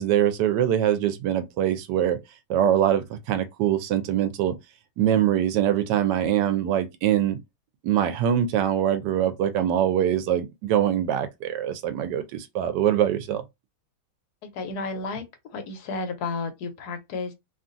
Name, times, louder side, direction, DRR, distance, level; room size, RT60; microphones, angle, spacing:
voice 1, 0.0-2.2 2.5-4.6 5.0-7.4 7.8-13.4, right 10 dB, 85° right, 1.2 m, -23 dB
voice 2, 14.4-15.2 15.5-17.3, left 3 dB, 70° left, 1.2 m, -32 dB
2.9 x 2.4 x 2.5 m
omnidirectional pair, 1.8 m